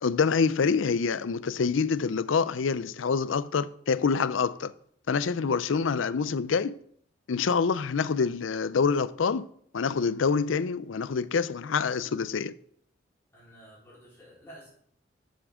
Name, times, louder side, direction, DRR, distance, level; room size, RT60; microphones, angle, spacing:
voice 1, 0.0-4.7 5.1-6.7 7.3-9.5 9.7-12.5, left 5 dB, 90° left, 0.5 m, -26 dB
voice 2, 13.3-14.7, right 1 dB, 15° left, 4.1 m, -51 dB
12.0 x 7.3 x 3.7 m
head